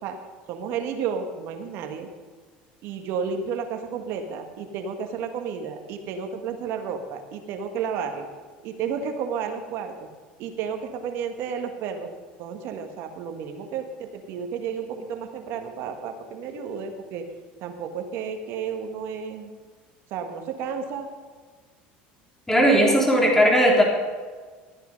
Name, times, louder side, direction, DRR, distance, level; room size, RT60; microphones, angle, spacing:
voice 1, 0.5-2.1 2.8-8.3 8.6-10.1 10.4-12.1 12.4-17.2 17.6-19.5 20.1-21.1 22.5-23.3, right 6 dB, 65° right, 5 dB, 1.6 m, -32 dB
voice 2, 22.5-23.8, equal, 10° left, -1 dB, 3.2 m, -17 dB
13.0 x 9.1 x 5.3 m, 1.5 s
supercardioid pair, 100°, 4 cm